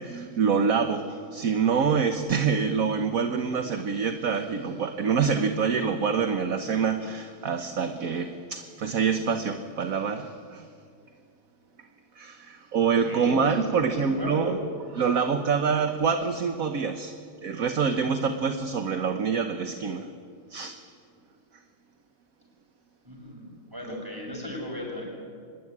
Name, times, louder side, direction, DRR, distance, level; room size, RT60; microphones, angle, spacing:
voice 1, 0.0-10.7 12.1-14.6 14.9-20.1 20.5-20.8, right 6 dB, 50° right, 7 dB, 1.3 m, -26 dB
voice 2, 13.0-14.5 23.0-25.0, left 1 dB, 10° right, -1 dB, 7.5 m, -36 dB
25.0 x 20.5 x 9.7 m, 2.2 s
omnidirectional pair, 2.4 m